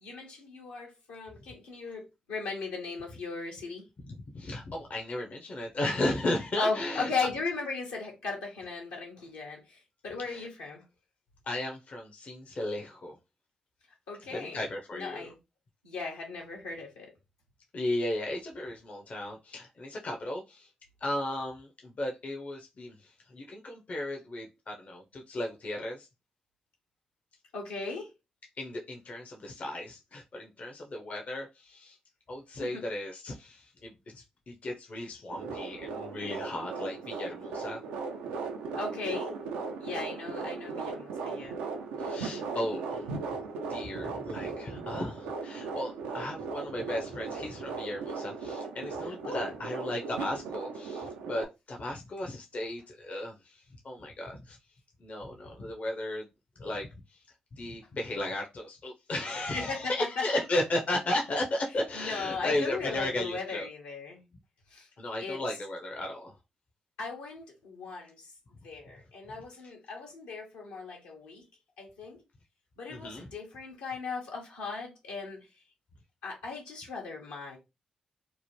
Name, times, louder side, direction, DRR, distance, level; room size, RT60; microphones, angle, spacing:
voice 1, 0.0-3.8 6.6-10.8 14.1-15.3 15.8-17.1 27.5-28.1 32.6-32.8 38.7-39.3 39.8-41.6 49.0-49.5 59.5-60.3 61.9-64.2 64.7-64.9 65.2-65.4 67.0-68.3 68.6-71.4 71.8-72.2 72.8-75.5 76.2-77.6, left 4 dB, 85° left, 1.1 m, -37 dB
voice 2, 4.1-7.1 10.2-10.5 11.4-13.2 14.3-15.3 17.7-20.7 21.0-26.1 28.6-32.0 32.3-37.8 42.0-43.1 43.7-54.6 55.0-56.3 56.6-57.2 57.5-63.7 65.0-66.3 72.9-73.3, left 1 dB, 50° left, 0.6 m, -35 dB
sound 1, 35.3-51.5, right 4 dB, 85° right, 0.4 m, -37 dB
2.9 x 2.1 x 3.0 m
hypercardioid pair, 40°, 3 cm